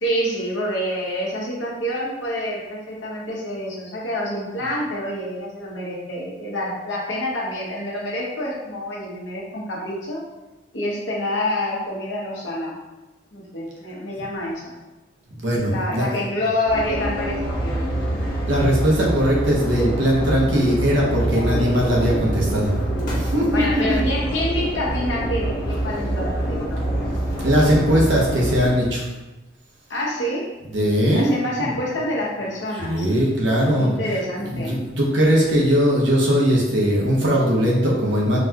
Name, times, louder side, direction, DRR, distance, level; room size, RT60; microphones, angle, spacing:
voice 1, 0.0-10.2 10.7-12.8 13.3-14.7 15.7-17.9 21.3-21.8 23.5-26.8 29.9-30.5 31.1-33.1 33.4-34.7, left 1 dB, 70° left, -4 dB, 0.9 m, -27 dB
voice 2, 15.3-16.1 18.2-22.8 23.1-24.0 27.4-29.0 30.7-31.3 31.6-31.7 32.8-34.0 34.5-38.4, equal, 75° right, -3 dB, 0.9 m, -20 dB
sound 1, 16.7-28.7, right 1 dB, 45° left, 1.0 m, -25 dB
4.0 x 2.3 x 2.8 m, 1.1 s
head